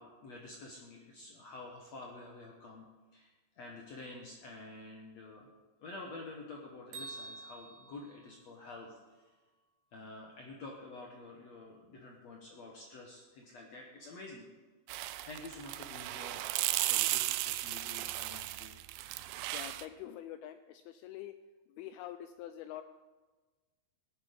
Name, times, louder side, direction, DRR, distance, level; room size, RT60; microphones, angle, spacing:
voice 1, 0.0-5.5 5.8-9.2 9.9-14.5 15.0-16.5 16.9-18.7, left 2 dB, 65° left, 0 dB, 1.7 m, -49 dB
Bell, 6.9-9.0, right 3 dB, 50° right, 3.4 m, -48 dB
sound 1, 14.9-19.9, right 16 dB, 80° right, 2.6 m, -35 dB
voice 2, 19.5-21.3 21.7-22.8, left 12 dB, 90° left, 10 dB, 2.2 m, -45 dB
17.5 x 9.3 x 5.2 m, 1.3 s
omnidirectional pair, 4.9 m